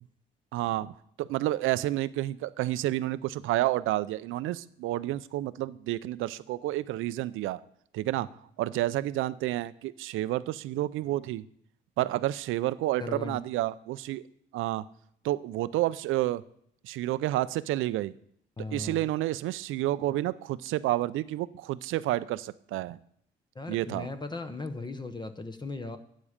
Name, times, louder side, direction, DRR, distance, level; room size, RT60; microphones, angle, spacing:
voice 1, 0.5-7.6 7.9-8.3 8.6-11.4 12.0-14.2 14.5-14.8 15.2-16.4 16.8-18.1 18.7-23.0 23.7-24.1, right 15 dB, 85° right, 16 dB, 0.5 m, -30 dB
voice 2, 13.0-13.4 18.6-19.1 23.5-26.0, left 3 dB, 20° left, 9 dB, 0.9 m, -37 dB
14.0 x 8.7 x 5.0 m, 0.69 s
cardioid pair, 90°, 20 cm